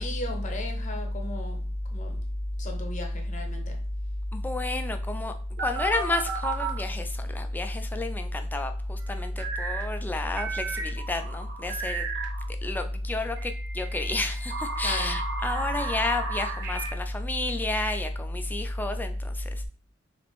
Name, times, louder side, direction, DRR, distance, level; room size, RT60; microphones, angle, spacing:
voice 1, 0.0-1.6 1.9-2.2 2.6-3.8 14.8-15.2, left 1 dB, 40° left, 3 dB, 0.8 m, -31 dB
voice 2, 4.3-5.3 5.6-12.1 12.5-19.7, left 2 dB, 10° left, 6 dB, 0.3 m, -32 dB
sound 1, 5.6-6.8 9.4-9.9 10.4-12.5 13.4-16.9, right 4 dB, 55° right, 0.7 m, -34 dB
3.3 x 2.5 x 3.4 m, 0.42 s
head